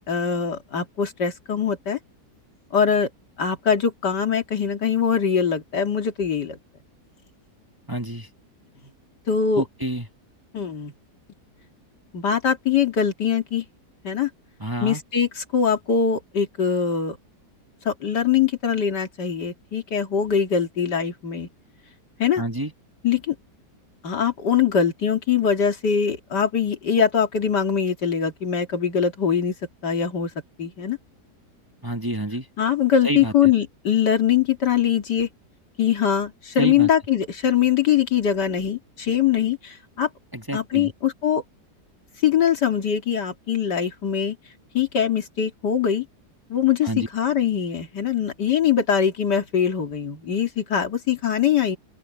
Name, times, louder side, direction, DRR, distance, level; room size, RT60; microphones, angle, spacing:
voice 1, 0.1-2.0 2.7-3.1 3.4-6.6 9.3-9.6 10.5-10.9 12.1-13.6 14.0-14.3 14.8-17.2 17.8-21.5 22.2-22.4 23.0-23.3 24.0-29.5 29.8-30.3 30.6-31.0 32.6-35.3 35.8-40.1 40.5-41.4 42.2-44.4 44.7-46.1 46.5-51.8, left 8 dB, 85° left, 2.9 m, -22 dB
voice 2, 7.9-8.3 9.5-10.1 14.6-15.0 22.4-22.7 31.8-32.5 33.0-33.5 36.6-36.9 40.3-40.9 46.8-47.1, right 1 dB, 15° right, 1.4 m, -28 dB
open air
omnidirectional pair, 1.8 m